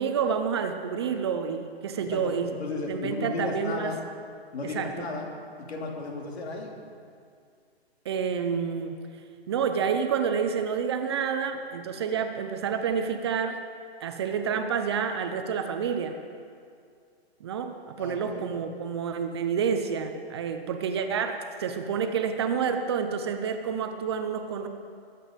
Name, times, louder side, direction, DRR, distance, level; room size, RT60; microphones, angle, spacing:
voice 1, 0.0-2.5 2.9-3.9 4.6-5.1 8.1-9.0 9.5-13.6 14.0-16.2 17.4-24.7, right 6 dB, 25° right, 7 dB, 0.6 m, -29 dB
voice 2, 2.1-4.0 4.5-5.3 5.6-6.8 18.0-18.5, left 3 dB, 80° left, 0 dB, 3.1 m, -34 dB
20.5 x 8.4 x 5.1 m, 2.3 s
hypercardioid pair, 165°, 31 cm